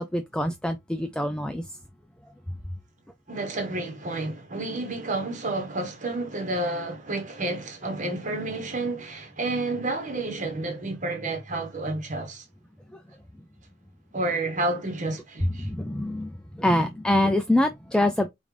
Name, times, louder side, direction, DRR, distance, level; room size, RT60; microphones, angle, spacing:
voice 1, 0.0-1.6 15.6-18.3, left 1 dB, 5° left, 0.3 m, -25 dB
voice 2, 3.3-12.5 14.1-15.7, right 2 dB, 40° right, 1.1 m, -30 dB
5.1 x 2.5 x 3.2 m
head